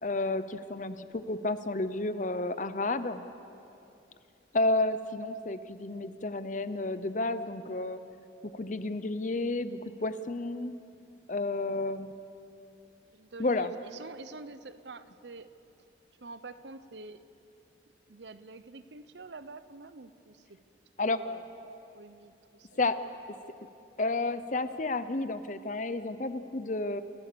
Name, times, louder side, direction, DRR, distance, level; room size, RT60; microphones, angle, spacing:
voice 1, 0.0-3.2 4.5-8.0 8.4-10.7 11.3-12.2 13.4-13.7 21.0-21.2 22.8-23.0 24.0-27.0, left 2 dB, 40° left, 12 dB, 0.7 m, -31 dB
voice 2, 13.1-15.5 16.2-17.2 18.1-20.6 21.0-21.5 21.9-22.9, right 3 dB, 65° right, 13 dB, 0.8 m, -47 dB
29.5 x 15.0 x 6.9 m, 2.8 s
head